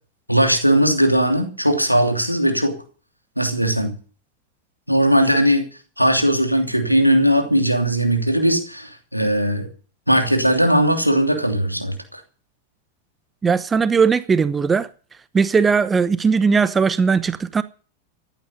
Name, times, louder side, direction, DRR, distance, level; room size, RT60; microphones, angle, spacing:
voice 1, 0.3-2.8 3.4-4.0 4.9-5.7 6.0-9.7 10.1-12.2, equal, 90° right, 2.9 m, -18 dB
voice 2, 13.4-14.9 15.3-17.6, right 5 dB, 15° right, 0.8 m, -18 dB
15.0 x 11.5 x 6.6 m
figure-of-eight pair, 90°, 0 cm